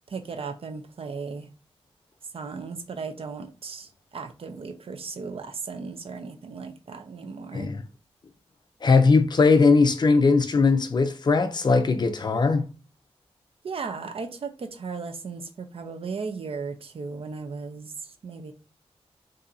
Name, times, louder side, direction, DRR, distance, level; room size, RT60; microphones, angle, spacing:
voice 1, 0.1-1.5 2.3-7.7 13.6-18.5, right 4 dB, 60° right, 0.7 m, -36 dB
voice 2, 8.8-12.7, left 4 dB, 40° left, 0.5 m, -19 dB
5.4 x 2.8 x 2.7 m
wide cardioid pair, 110°, 11 cm